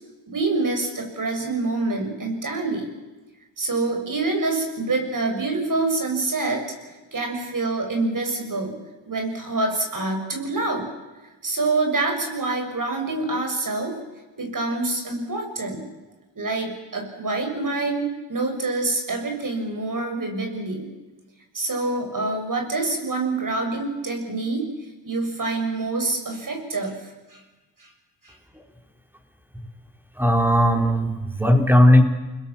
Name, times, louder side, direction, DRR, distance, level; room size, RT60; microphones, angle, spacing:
voice 1, 0.3-2.9 3.6-8.7 9.1-10.9 11.4-14.0 14.4-15.9 16.4-20.9 21.5-24.7 25.0-27.4 27.8-27.9 28.2-28.3, right 3 dB, 45° right, 4 dB, 7.3 m, -26 dB
voice 2, 30.2-32.0, equal, 5° right, 4 dB, 4.3 m, -17 dB
29.0 x 21.5 x 7.3 m, 1.2 s
cardioid pair, 60°, 44 cm